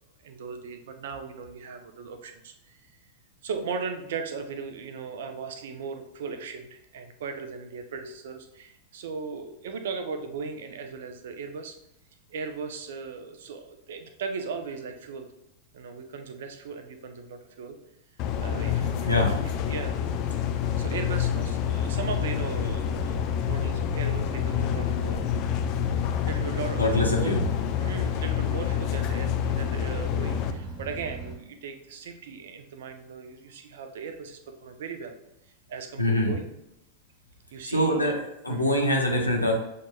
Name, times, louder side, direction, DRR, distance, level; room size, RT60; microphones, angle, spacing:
voice 1, 0.2-2.8 3.4-11.8 12.3-15.3 15.7-17.8 18.4-19.9 20.8-25.4 26.0-27.4 27.8-35.2 35.7-36.5 37.5-38.1 38.5-38.8, right 5 dB, 60° right, 7 dB, 0.5 m, -37 dB
sound 1, 18.2-30.5, left 10 dB, 40° left, 0.4 m, -28 dB
sound 2, 18.4-31.3, equal, 20° right, 1.2 m, -37 dB
voice 2, 26.8-27.4 36.0-36.3 37.6-39.5, left 1 dB, 90° left, -1 dB, 0.8 m, -24 dB
7.2 x 2.8 x 2.2 m, 0.84 s
figure-of-eight pair, 90°, 0 cm